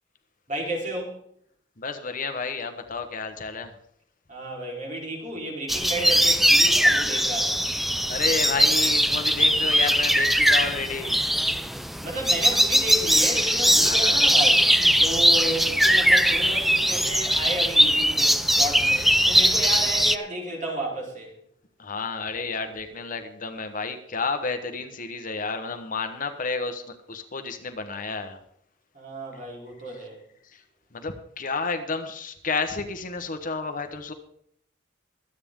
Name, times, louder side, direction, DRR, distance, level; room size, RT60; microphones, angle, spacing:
voice 1, 0.5-1.2 4.3-7.6 12.0-14.7 15.0-21.3 28.9-30.2, right 1 dB, 40° right, -2 dB, 4.1 m, -32 dB
voice 2, 1.8-3.8 8.1-11.2 13.8-14.2 18.8-19.1 21.8-28.4 30.9-34.1, left 4 dB, 45° left, 8 dB, 1.1 m, -31 dB
sound 1, 5.7-20.2, equal, ahead, 0.4 m, -20 dB
23.0 x 8.8 x 3.7 m, 0.68 s
head